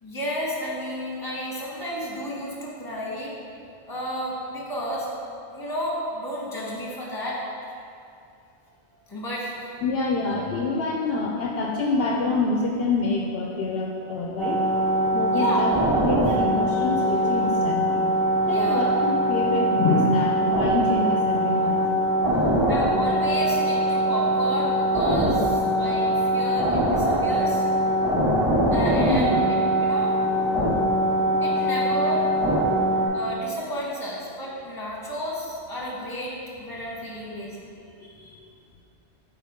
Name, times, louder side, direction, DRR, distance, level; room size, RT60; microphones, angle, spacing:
voice 1, 0.0-3.3 3.9-7.4 9.1-9.5 15.3-15.6 18.4-18.9 22.7-27.6 28.7-29.4 29.8-30.1 31.4-32.3 32.9-37.7, equal, 20° left, -5 dB, 1.3 m, -32 dB
voice 2, 9.8-14.6 15.1-15.7 16.0-18.0 18.5-21.8 22.3-22.6 29.1-29.4 38.0-38.4, left 3 dB, 70° left, -1 dB, 0.8 m, -26 dB
sound 1, 14.4-33.1, right 1 dB, 5° right, 1.5 m, -22 dB
8.3 x 4.2 x 3.6 m, 2.5 s
omnidirectional pair, 1.1 m